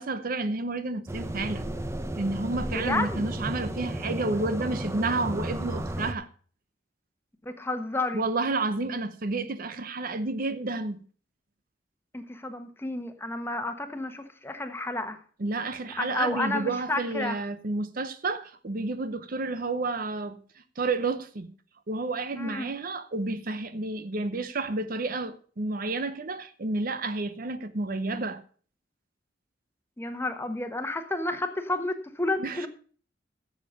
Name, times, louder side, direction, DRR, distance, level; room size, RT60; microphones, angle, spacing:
voice 1, 0.0-1.7 2.2-6.3 8.1-11.0 15.4-20.4 20.8-21.5 21.9-28.4 32.4-32.7, right 3 dB, 50° right, 0.8 m, -30 dB
sound 1, 1.1-6.1, right 1 dB, 15° right, 0.9 m, -33 dB
voice 2, 2.7-3.3 7.4-8.2 12.1-15.2 16.0-17.4 22.4-22.7 30.0-32.7, left 2 dB, 15° left, 1.2 m, -31 dB
11.0 x 7.3 x 6.4 m
head